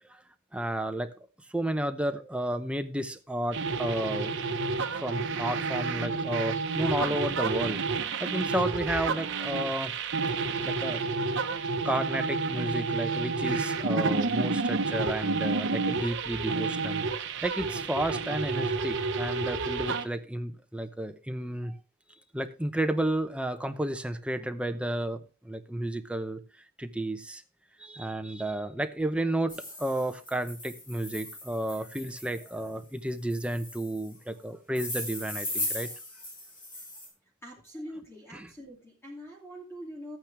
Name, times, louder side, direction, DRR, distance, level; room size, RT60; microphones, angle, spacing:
voice 1, 0.5-1.1 1.5-4.4 4.9-7.8 8.2-9.9 10.6-11.0 11.8-17.0 17.4-21.7 22.3-26.4 26.8-27.4 27.8-35.9 38.3-38.5, right 1 dB, 5° right, 0.7 m, -32 dB
sound 1, 3.5-20.0, right 4 dB, 60° right, 1.1 m, -30 dB
sound 2, 29.5-32.6 33.3-34.1 34.7-37.1, left 1 dB, 40° left, 6.6 m, -38 dB
voice 2, 37.4-40.2, equal, 10° left, 2.8 m, -43 dB
13.5 x 9.0 x 3.4 m
head